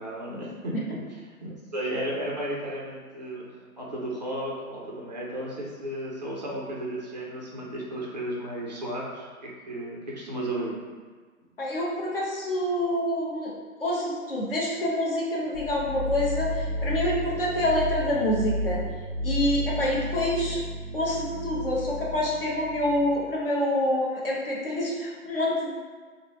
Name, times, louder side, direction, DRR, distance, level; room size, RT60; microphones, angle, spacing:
voice 1, 0.0-3.4 3.8-10.7, right 1 dB, 30° right, -4 dB, 0.4 m, -34 dB
voice 2, 11.6-13.5 13.8-18.8 19.2-20.6 20.9-25.8, left 1 dB, 40° left, -4 dB, 0.7 m, -27 dB
sound 1, 15.5-23.3, equal, 60° left, 1.3 m, -32 dB
3.2 x 2.1 x 4.1 m, 1.5 s
hypercardioid pair, 160°, 43 cm